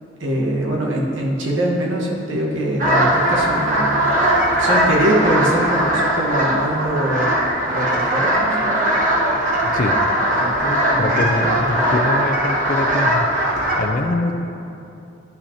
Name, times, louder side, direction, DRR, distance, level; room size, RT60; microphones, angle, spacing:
voice 1, 0.2-8.9 10.3-11.9, right 1 dB, 85° right, -3 dB, 1.4 m, -23 dB
sound 1, 2.8-13.8, right 1 dB, 45° right, 1.1 m, -19 dB
voice 2, 11.0-13.3 13.6-14.3, left 2 dB, 45° left, 5 dB, 0.4 m, -23 dB
11.5 x 5.7 x 2.8 m, 2.7 s
head